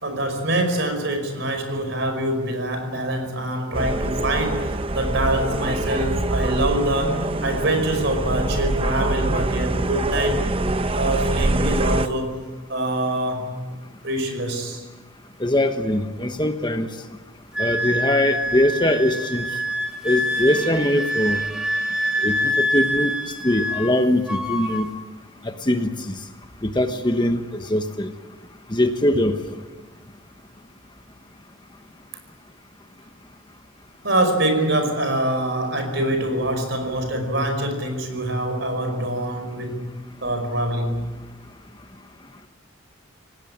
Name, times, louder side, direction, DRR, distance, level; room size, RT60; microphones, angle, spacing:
voice 1, 0.0-10.4 10.9-12.4 12.7-13.5 14.0-14.8 34.0-39.9 40.2-41.1, right 1 dB, 55° right, 6 dB, 5.3 m, -24 dB
sound 1, 3.7-12.1, right 2 dB, 25° right, 0.7 m, -24 dB
voice 2, 15.4-16.9 17.6-19.5 20.0-21.4 22.2-23.1 23.4-24.9 25.6-26.1 26.6-28.1 28.7-29.4, left 1 dB, 20° left, 7 dB, 1.2 m, -21 dB
Wind instrument woodwind instrument, 17.5-24.0 24.3-24.9, equal, 5° right, 2.1 m, -25 dB
27.5 x 18.5 x 8.8 m, 1.3 s
head